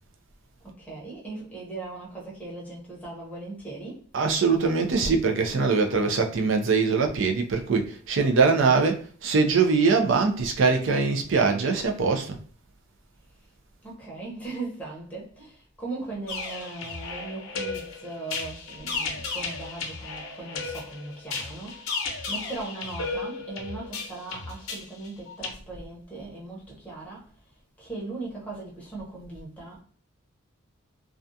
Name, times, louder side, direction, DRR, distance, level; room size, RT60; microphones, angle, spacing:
voice 1, 0.6-4.0 13.8-27.3 27.8-29.8, right 3 dB, 5° left, 0.8 m, -38 dB
voice 2, 4.1-12.4, right 4 dB, 65° right, 0.4 m, -22 dB
sound 1, 16.3-25.5, left 4 dB, 80° left, 0.6 m, -34 dB
2.4 x 2.2 x 2.6 m
head